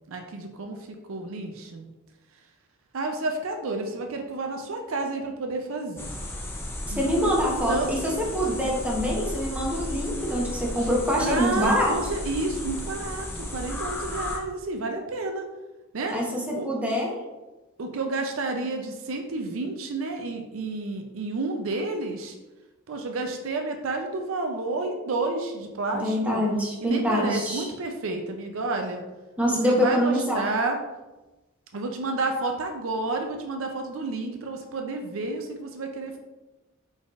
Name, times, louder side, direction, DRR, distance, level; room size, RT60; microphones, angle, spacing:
voice 1, 0.1-1.9 2.9-6.1 6.9-7.3 7.7-8.0 10.8-10.9 11.2-15.5 15.9-16.2 16.5-16.7 17.8-22.4 22.9-26.4 26.8-29.0 29.5-30.8 31.7-36.2, right 3 dB, 65° right, 4 dB, 0.5 m, -30 dB
sound 1, 6.0-14.4, left 1 dB, 10° left, 0.5 m, -34 dB
voice 2, 7.0-8.0 8.3-11.9 16.1-17.1 25.9-27.7 29.4-30.4, equal, 5° right, -3 dB, 0.9 m, -25 dB
4.8 x 4.2 x 2.4 m, 1.1 s
head